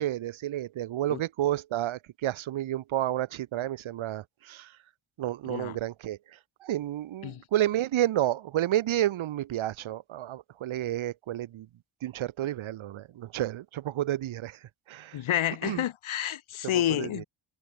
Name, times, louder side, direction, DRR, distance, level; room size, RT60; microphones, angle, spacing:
voice 1, 0.0-4.7 5.2-6.2 6.6-11.7 12.0-14.6 14.9-15.2 15.6-15.8 16.6-17.2, right 13 dB, 70° right, 0.8 m, -30 dB
voice 2, 5.4-5.8 7.2-7.4 15.1-17.3, left 12 dB, 75° left, 1.1 m, -29 dB
cardioid pair, 50°, 50 cm